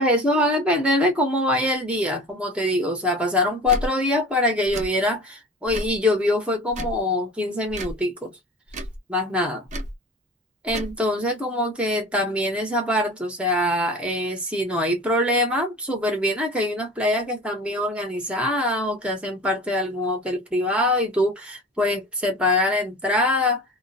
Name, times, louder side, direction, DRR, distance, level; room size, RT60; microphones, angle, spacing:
voice 1, 0.0-8.3 9.1-9.7 10.6-23.6, left 1 dB, 5° right, 0.9 m, -23 dB
Tick / Tick-tock, 3.6-3.9 4.7-4.9 5.7-6.0 6.7-7.0 7.7-8.0 8.7-9.0 9.7-9.9 10.7-10.9, right 1 dB, 40° right, 0.6 m, -32 dB
2.4 x 2.2 x 2.6 m
head